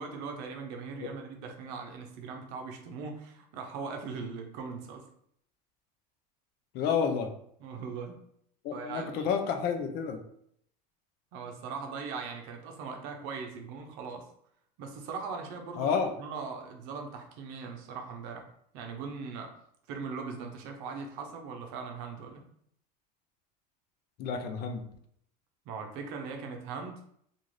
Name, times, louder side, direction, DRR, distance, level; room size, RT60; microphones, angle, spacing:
voice 1, 0.0-5.0 7.6-8.2 8.7-9.3 11.3-14.3 14.8-18.5 18.7-19.6 19.9-22.4 25.7-27.0, right 5 dB, 65° right, 3 dB, 0.7 m, -40 dB
voice 2, 6.7-7.3 8.6-10.2 15.8-16.1 24.2-24.8, left 6 dB, 50° left, 6 dB, 0.5 m, -30 dB
2.5 x 2.4 x 3.1 m, 0.68 s
supercardioid pair, 115°, 21 cm